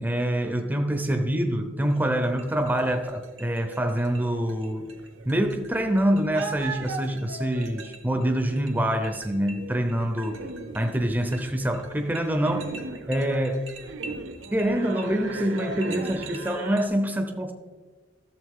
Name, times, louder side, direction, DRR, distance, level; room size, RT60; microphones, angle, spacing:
voice 1, 0.0-4.8 5.3-10.4 10.7-12.7 13.1-13.6 14.5-17.5, right 1 dB, 10° right, 5 dB, 0.6 m, -25 dB
sound 1, 1.8-16.9, right 3 dB, 70° right, 1.0 m, -39 dB
12.5 x 7.1 x 3.6 m, 1.4 s
head